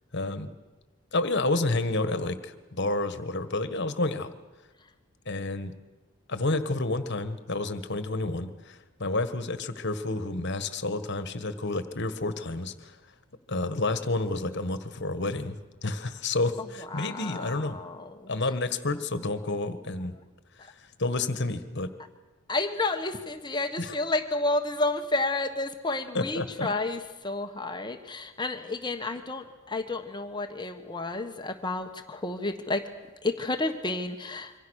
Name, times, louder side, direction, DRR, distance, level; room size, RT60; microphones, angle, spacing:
voice 1, 0.1-0.5 1.1-4.3 5.2-5.7 6.3-13.0 13.5-17.8 18.3-20.1 20.6-20.7 21.0-21.9 23.8-23.9 26.1-26.7, left 2 dB, 50° left, 11 dB, 1.6 m, -30 dB
voice 2, 16.9-18.3 22.5-32.9 33.2-34.5, left 2 dB, 20° left, 6 dB, 1.3 m, -31 dB
27.0 x 24.0 x 6.5 m, 1.2 s
head